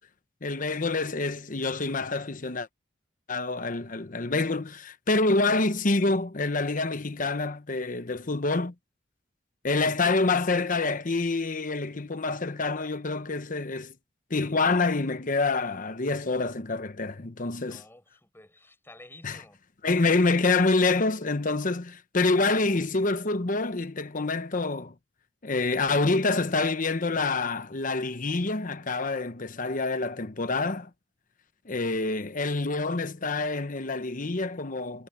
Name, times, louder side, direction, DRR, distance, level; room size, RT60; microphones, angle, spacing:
voice 1, 0.4-2.7 3.3-8.7 9.6-13.9 14.3-17.8 19.2-19.4 19.8-24.9 25.4-30.9 31.6-35.1, left 3 dB, 45° left, 1.0 m, -27 dB
voice 2, 17.6-19.6, left 1 dB, 10° left, 8.0 m, -52 dB
head